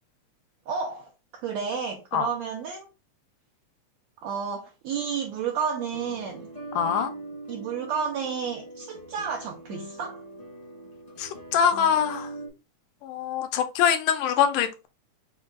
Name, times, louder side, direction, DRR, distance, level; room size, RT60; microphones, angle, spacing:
voice 1, 0.7-2.9 4.2-6.5 7.5-10.2, right 6 dB, 80° right, 1.6 m, -31 dB
sound 1, 5.9-12.5, right 2 dB, 30° left, 0.7 m, -41 dB
voice 2, 6.8-7.1 11.2-12.3 13.0-14.9, left 8 dB, 80° left, 2.2 m, -24 dB
5.2 x 2.4 x 3.6 m
omnidirectional pair, 3.8 m